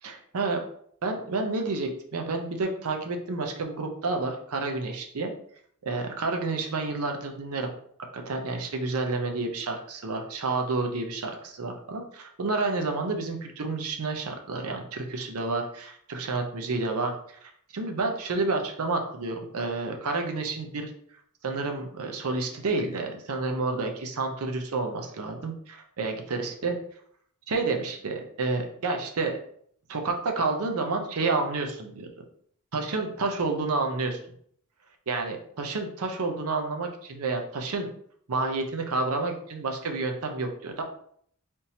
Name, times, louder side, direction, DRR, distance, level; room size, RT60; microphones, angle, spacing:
voice 1, 0.0-0.6 1.0-5.3 5.8-7.7 8.1-20.9 21.4-26.8 27.5-29.4 29.9-32.1 32.7-34.2 35.1-37.9 38.3-40.8, right 3 dB, 70° right, 4 dB, 0.6 m, -30 dB
3.5 x 2.7 x 2.8 m, 0.63 s
head